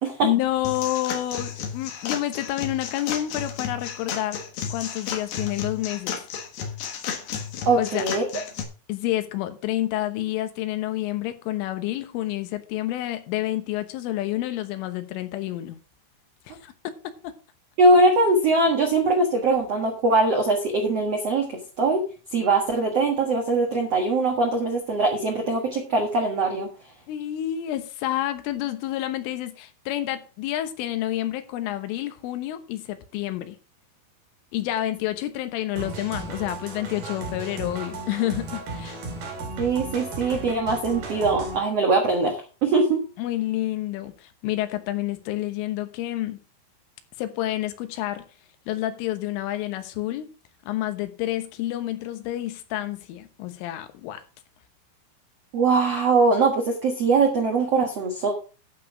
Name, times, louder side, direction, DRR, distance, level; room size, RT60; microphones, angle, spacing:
voice 1, 0.2-4.4 4.7-6.2 7.8-8.1 8.9-15.8 16.6-17.3 27.1-33.6 34.5-39.0 43.2-46.4 47.2-48.2 48.7-50.3 50.7-54.2, left 14 dB, 85° left, 3.7 m, -29 dB
sound 1, 0.6-8.6, left 7 dB, 65° left, 2.9 m, -33 dB
voice 2, 7.6-8.2 17.8-22.0 22.3-26.7 39.6-43.0 55.5-58.3, right 3 dB, 85° right, 1.4 m, -22 dB
sound 2, 35.8-41.6, right 3 dB, 55° right, 4.1 m, -35 dB
11.5 x 6.4 x 4.9 m
omnidirectional pair, 5.6 m